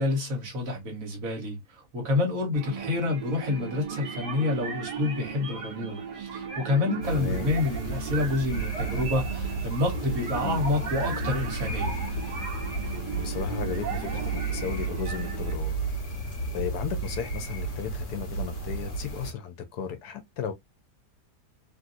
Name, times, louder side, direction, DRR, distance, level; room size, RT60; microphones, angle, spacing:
voice 1, 0.0-12.0, left 2 dB, 55° right, 1.6 m, -28 dB
sound 1, 2.5-15.6, right 6 dB, 75° right, 1.5 m, -37 dB
sound 2, 7.0-19.3, right 2 dB, 45° left, 1.4 m, -33 dB
voice 2, 7.1-7.5 10.4-10.6 13.1-15.8 16.5-20.5, left 8 dB, 70° left, 1.2 m, -35 dB
3.3 x 2.6 x 2.5 m
omnidirectional pair, 1.8 m